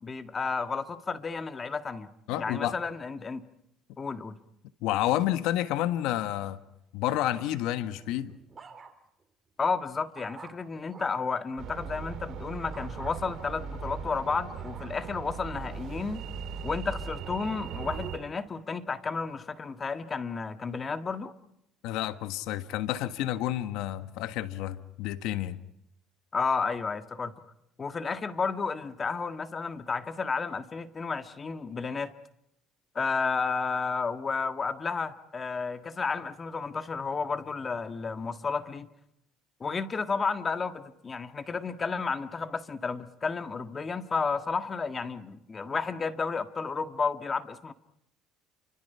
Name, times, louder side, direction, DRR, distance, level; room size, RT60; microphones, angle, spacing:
voice 1, 0.0-2.1 2.4-3.4 4.0-4.4 9.6-16.2 16.6-21.3 26.3-27.3 27.8-32.1 33.0-38.9 39.6-47.7, left 5 dB, 25° left, 1.7 m, -32 dB
voice 2, 2.3-2.7 4.8-6.6 6.9-8.4 21.8-25.6, left 13 dB, 80° left, 1.6 m, -30 dB
sound 1, 7.9-9.2 9.7-11.4 12.7-13.2 13.8-15.8 16.4-16.8, right 5 dB, 25° right, 2.9 m, -50 dB
sound 2, 11.6-18.2, right 6 dB, 60° right, 3.1 m, -39 dB
30.0 x 25.5 x 5.7 m
cardioid pair, 115°, 0 cm